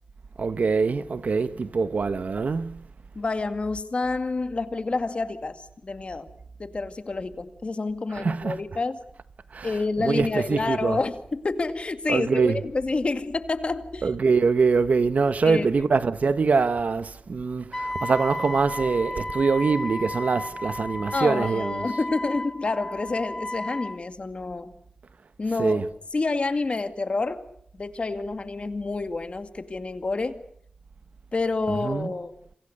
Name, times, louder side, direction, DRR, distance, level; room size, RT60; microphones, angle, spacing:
voice 1, 0.4-2.8 8.1-8.6 9.5-9.7 10.0-11.0 12.1-12.6 14.0-21.9 25.6-25.9 31.8-32.1, right 4 dB, 70° right, 1.2 m, -24 dB
voice 2, 3.1-6.3 6.6-9.0 9.6-14.1 15.4-15.7 21.1-24.7 25.4-25.8 26.1-27.4 27.8-30.4 31.3-32.3, left 3 dB, 50° left, 2.2 m, -28 dB
Wind instrument woodwind instrument, 17.7-24.0, left 1 dB, 15° left, 1.5 m, -33 dB
28.5 x 26.5 x 6.7 m
wide cardioid pair, 80°, 3 cm